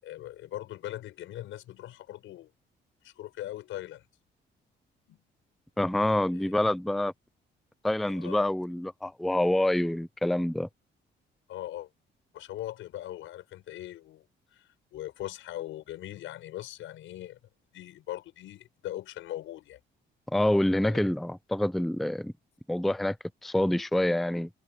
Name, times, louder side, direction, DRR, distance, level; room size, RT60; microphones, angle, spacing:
voice 1, 0.0-2.5 3.0-4.0 5.1-5.2 6.3-6.5 8.1-8.5 11.5-11.9 12.3-14.3 14.5-17.4 17.7-19.8 20.8-21.0, left 13 dB, 85° left, 5.3 m, -40 dB
voice 2, 5.8-7.1 7.8-10.7 20.3-22.3 22.7-23.2 23.4-24.5, left 1 dB, ahead, 0.5 m, -26 dB
cardioid pair, 90°, 20 cm